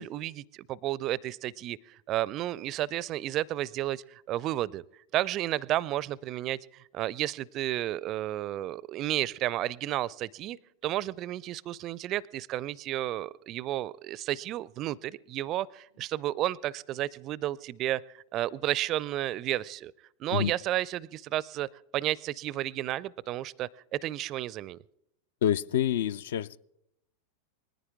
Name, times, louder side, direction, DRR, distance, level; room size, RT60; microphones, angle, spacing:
voice 1, 0.0-4.8 5.1-10.6 10.8-19.9 20.2-24.8, right 14 dB, 35° right, 0.4 m, -32 dB
voice 2, 25.4-26.6, left 10 dB, 55° left, 0.4 m, -27 dB
20.0 x 14.0 x 3.6 m
figure-of-eight pair, 90°, 0 cm